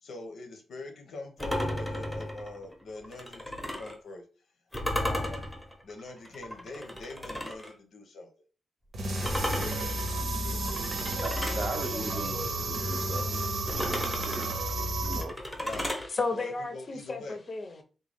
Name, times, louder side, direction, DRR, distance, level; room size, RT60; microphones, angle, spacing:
voice 1, 0.0-4.2 4.9-5.6 5.8-8.3 9.2-10.7 11.6-12.1 15.6-15.9 16.3-17.4, left 2 dB, 80° left, 0.8 m, -44 dB
sound 1, 1.4-4.0 4.7-7.7 9.2-11.7 13.7-16.1, left 1 dB, 5° left, 0.7 m, -34 dB
sound 2, 8.9-15.2, right 2 dB, 75° right, 0.8 m, -32 dB
voice 2, 11.1-15.4, right 2 dB, 35° right, 0.5 m, -40 dB
voice 3, 15.7-17.8, left 3 dB, 40° left, 0.6 m, -34 dB
3.7 x 2.3 x 3.4 m
wide cardioid pair, 140°, 0 cm